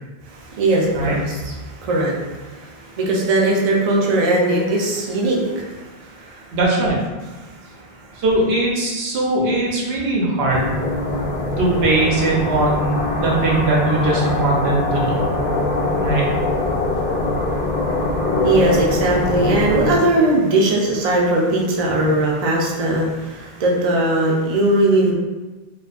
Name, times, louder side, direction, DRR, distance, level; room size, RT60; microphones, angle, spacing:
voice 1, 0.3-6.6 7.4-8.2 18.4-25.1, right 2 dB, 50° right, -2 dB, 0.5 m, -20 dB
voice 2, 6.5-6.9 8.2-10.7 11.6-15.2 15.9-16.3, right 2 dB, 90° right, -3 dB, 0.9 m, -20 dB
sound 1, 10.5-20.0, left 2 dB, 60° left, 0.7 m, -22 dB
2.5 x 2.3 x 2.3 m, 1.2 s
omnidirectional pair, 1.0 m